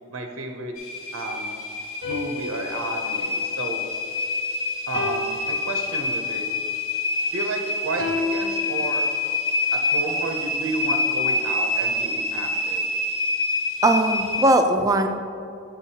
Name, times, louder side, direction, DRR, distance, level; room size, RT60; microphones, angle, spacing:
voice 1, 0.1-0.7 1.1-1.5 2.0-3.8 4.9-6.5 7.3-9.0 9.7-12.8, right 2 dB, 65° right, 3 dB, 0.5 m, -32 dB
sound 1, 0.8-14.5, left 2 dB, 70° left, 0.9 m, -27 dB
sound 2, 2.0-4.4 4.9-6.4 8.0-9.5, left 4 dB, 50° left, 0.5 m, -33 dB
voice 2, 13.8-15.1, right 1 dB, 15° right, 6 dB, 0.4 m, -19 dB
7.2 x 7.0 x 2.7 m, 2.5 s
head